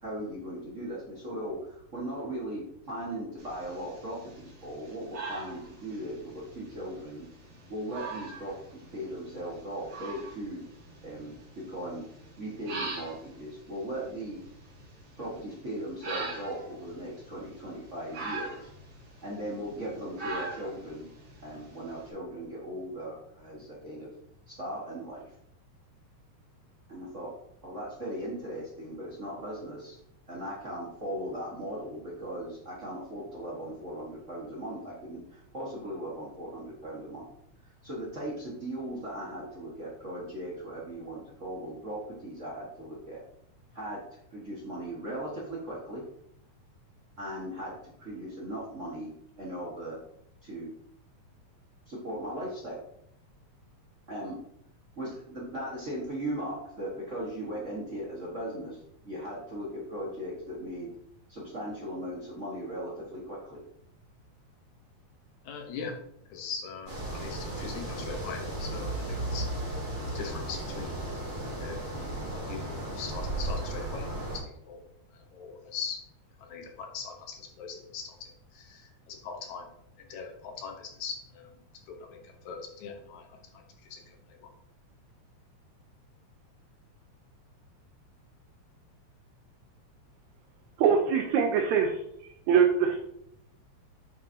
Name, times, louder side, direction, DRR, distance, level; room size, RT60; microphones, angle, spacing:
voice 1, 0.0-7.2 7.7-10.6 11.0-12.0 12.4-14.4 15.2-18.7 19.2-21.1 21.4-24.1 24.5-25.3 26.9-27.3 27.6-30.0 30.3-37.3 37.8-43.2 43.7-46.0 47.2-49.1 49.4-50.0 50.4-50.7 51.9-52.8 54.1-54.4 55.0-60.9 61.3-63.6, right 1 dB, 40° right, -5 dB, 1.1 m, -38 dB
sound 1, 3.4-22.1, right 3 dB, 55° right, 3.2 m, -43 dB
voice 2, 65.4-66.0 66.3-69.5 70.1-71.0 71.5-74.8 75.1-76.0 76.4-79.7 80.0-81.6 81.9-84.5, left 5 dB, 80° left, 3 dB, 2.4 m, -41 dB
sound 2, 66.9-74.4, right 1 dB, 15° right, 2.8 m, -35 dB
voice 3, 90.8-92.0 92.5-93.0, right 7 dB, 80° right, 2 dB, 2.0 m, -23 dB
7.6 x 5.2 x 2.8 m, 0.72 s
omnidirectional pair, 3.3 m